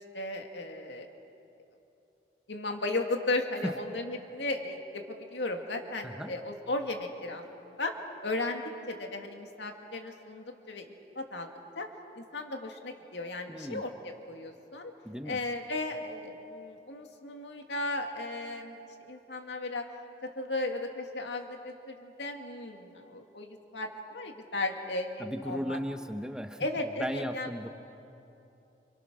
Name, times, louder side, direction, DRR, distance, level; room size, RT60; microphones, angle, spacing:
voice 1, 0.1-1.1 2.5-7.9 8.2-10.9 11.2-11.5 11.8-11.9 12.2-14.9 15.3-19.8 20.4-25.8 26.6-27.5, left 2 dB, 80° left, 3 dB, 2.4 m, -35 dB
voice 2, 13.5-13.9 15.0-15.4 25.2-27.7, equal, 5° right, 6 dB, 1.0 m, -36 dB
30.0 x 28.0 x 6.3 m, 2.9 s
head